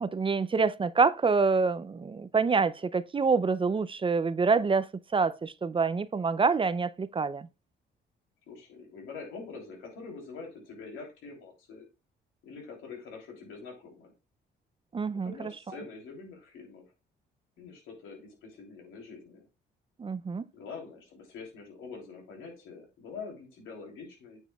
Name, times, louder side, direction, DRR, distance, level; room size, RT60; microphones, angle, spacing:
voice 1, 0.0-4.9 5.1-7.5 14.9-15.3 20.0-20.4, right 4 dB, 25° right, 0.5 m, -26 dB
voice 2, 8.5-11.8 12.4-14.1 15.2-16.8 17.6-19.5 20.5-24.4, left 4 dB, 85° left, 3.2 m, -45 dB
9.0 x 7.3 x 2.3 m
cardioid pair, 90°, 20 cm